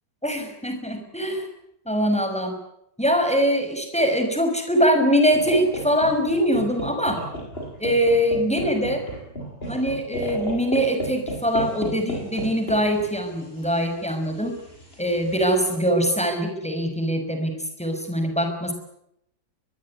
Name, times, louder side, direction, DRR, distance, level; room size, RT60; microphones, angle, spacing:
voice 1, 0.2-1.5 1.9-2.5 3.0-7.2 7.8-9.0 9.7-14.5 15.0-17.5 17.8-18.7, equal, 5° left, 6 dB, 5.8 m, -22 dB
sound 1, 5.3-15.8, right 1 dB, 35° left, 8.5 m, -34 dB
22.5 x 22.0 x 9.9 m, 0.79 s
omnidirectional pair, 1.9 m